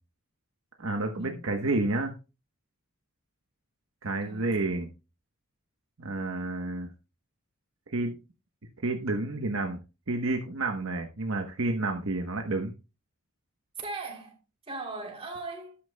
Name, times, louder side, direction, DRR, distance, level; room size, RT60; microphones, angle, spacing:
voice 1, 0.8-2.1 4.0-4.9 6.0-6.9 7.9-8.1 8.8-9.8 10.1-12.7, right 2 dB, 65° right, 1.0 m, -30 dB
voice 2, 4.2-4.6 13.8-15.8, right 3 dB, 25° right, 3.0 m, -39 dB
12.5 x 10.0 x 2.2 m
head